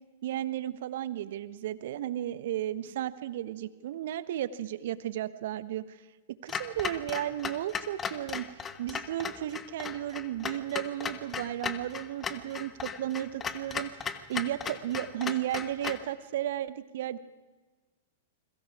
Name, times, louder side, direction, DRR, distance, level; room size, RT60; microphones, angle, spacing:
voice 1, 0.2-6.0 6.4-8.5 8.8-17.2, right 12 dB, 60° right, 14 dB, 1.3 m, -34 dB
Clock, 6.5-16.1, left 6 dB, 20° left, 1.5 m, -37 dB
29.5 x 22.0 x 5.0 m, 1.3 s
hypercardioid pair, 105°, 0 cm